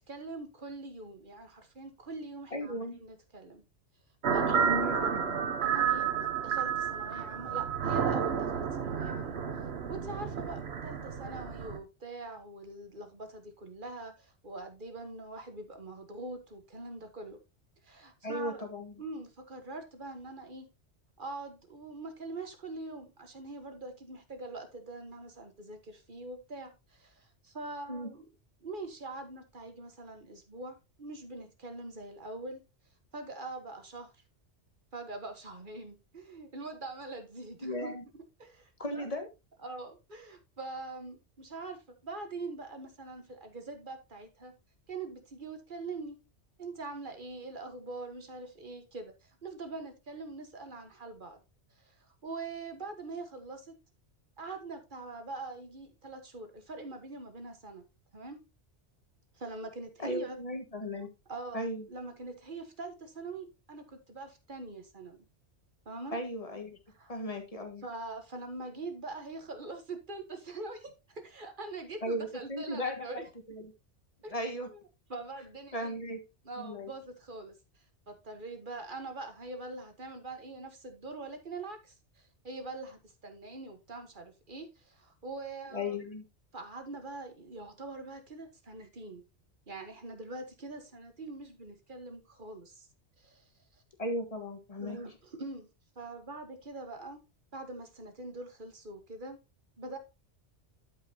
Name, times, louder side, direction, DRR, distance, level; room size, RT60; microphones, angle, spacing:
voice 1, 0.0-3.6 4.3-5.3 5.6-6.1 6.4-9.4 9.9-17.4 17.8-18.7 19.0-20.6 21.2-28.3 28.6-32.6 33.1-34.1 34.9-39.1 39.6-44.5 44.9-46.2 46.6-51.4 51.7-53.8 54.4-57.8 58.1-58.4 59.3-60.4 61.3-61.6 61.9-65.2 65.8-66.2 67.0-67.1 67.8-73.2 74.2-74.3 74.7-74.8 75.1-76.0 76.4-86.0 86.5-89.2 89.7-92.9 93.2-93.5 94.8-95.7 95.9-97.2 97.5-99.4 99.8-100.0, right 3 dB, 45° right, 1.4 m, -43 dB
voice 2, 2.5-3.0 4.6-5.4 18.2-19.0 27.9-28.1 37.6-38.0 38.8-39.3 60.0-61.1 61.5-61.9 66.1-66.8 67.1-67.8 72.0-73.7 74.3-74.7 75.7-76.2 76.6-76.9 85.7-86.2 94.0-95.0, equal, 30° left, 1.7 m, -36 dB
sound 1, 4.2-11.8, right 7 dB, 65° right, 1.2 m, -31 dB
12.0 x 5.3 x 2.8 m
omnidirectional pair, 1.2 m